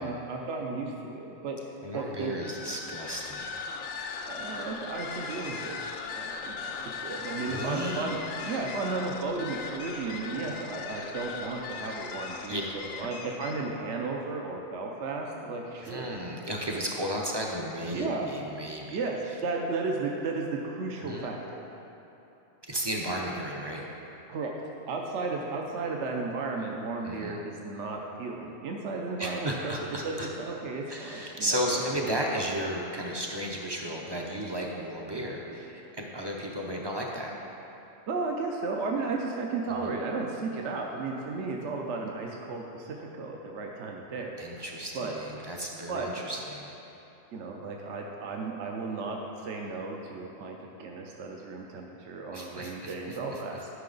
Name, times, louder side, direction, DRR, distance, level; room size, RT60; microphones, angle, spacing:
voice 1, 0.0-1.6 1.9-2.3 4.3-5.8 6.2-12.7 13.0-16.1 17.9-18.3 18.9-21.7 24.3-24.5 24.9-29.7 30.0-31.9 38.1-44.7 44.9-45.1 45.9-46.1 47.3-53.7, right 3 dB, 65° right, 0 dB, 1.0 m, -34 dB
voice 2, 1.8-3.7 7.5-8.1 12.5-12.6 13.8-13.9 15.8-19.0 20.9-21.3 22.6-23.9 27.0-27.4 29.2-30.3 30.9-37.3 39.7-39.9 44.4-46.7 52.3-53.4, equal, 30° right, -1 dB, 0.5 m, -34 dB
sound 1, 2.4-13.8, left 5 dB, 80° left, 1.0 m, -38 dB
11.5 x 5.7 x 3.9 m, 3.0 s
omnidirectional pair, 1.4 m